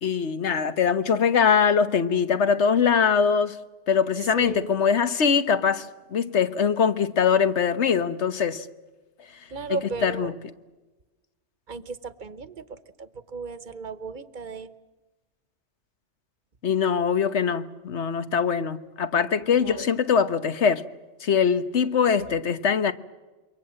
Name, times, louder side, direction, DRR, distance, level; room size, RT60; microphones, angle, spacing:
voice 1, 0.0-3.6 3.9-8.7 10.0-10.3 16.6-20.8 21.2-22.9, left 6 dB, 75° left, 1.4 m, -22 dB
voice 2, 4.4-4.9 9.5-10.3 11.7-14.7 19.4-19.9 22.2-22.4, right 4 dB, 45° right, 1.1 m, -35 dB
27.5 x 23.5 x 7.6 m
omnidirectional pair, 1.2 m